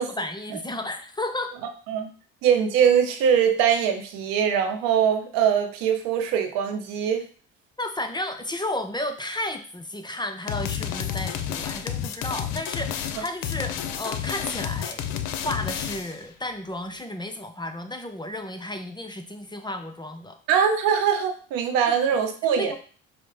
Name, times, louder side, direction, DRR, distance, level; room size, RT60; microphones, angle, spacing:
voice 1, 0.2-1.5 7.8-15.0 15.4-20.4 21.9-22.0 22.5-22.8, left 1 dB, 15° left, 6 dB, 0.5 m, -33 dB
voice 2, 2.4-7.3 20.5-22.8, right 8 dB, 75° right, 7 dB, 0.7 m, -22 dB
sound 1, 10.5-16.2, left 9 dB, 70° left, 0.5 m, -30 dB
4.8 x 2.0 x 3.4 m, 0.42 s
hypercardioid pair, 60°, 35 cm